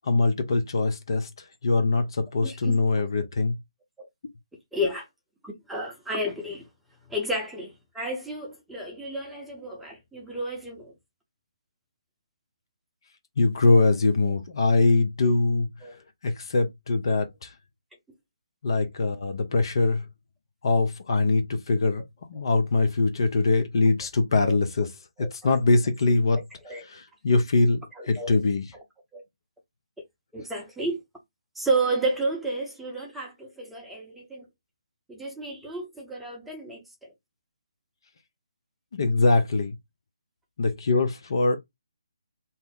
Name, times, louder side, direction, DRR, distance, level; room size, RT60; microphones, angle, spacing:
voice 1, 0.1-1.3 1.6-3.6 13.4-15.7 16.2-17.5 18.6-20.0 20.6-22.0 22.3-24.9 25.2-26.4 26.9-27.8 28.1-28.6 38.9-39.7 40.6-41.6, left 3 dB, 55° left, 0.6 m, -22 dB
voice 2, 2.4-3.1 4.0-4.1 4.7-5.1 5.4-6.7 7.1-10.9 14.2-14.3 15.8-16.0 24.4-24.6 25.2-25.3 26.6-26.8 27.9-28.4 28.7-28.8 29.1-29.2 30.3-31.0 31.5-34.5 35.1-37.1, right 1 dB, 5° right, 0.7 m, -31 dB
2.8 x 2.0 x 3.6 m
figure-of-eight pair, 145°, 3 cm